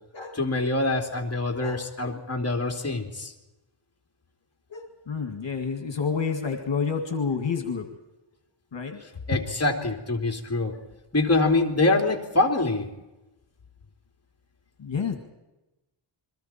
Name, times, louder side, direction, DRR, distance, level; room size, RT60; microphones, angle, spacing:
voice 1, 0.3-3.3 9.3-10.8 11.1-12.9, left 2 dB, 30° left, 3 dB, 3.1 m, -25 dB
voice 2, 4.7-7.9 8.7-9.0 9.3-9.4 10.7-10.8 14.8-15.2, left 5 dB, 65° left, 5 dB, 2.2 m, -29 dB
28.5 x 22.0 x 4.5 m, 1.0 s
wide cardioid pair, 95°, 48 cm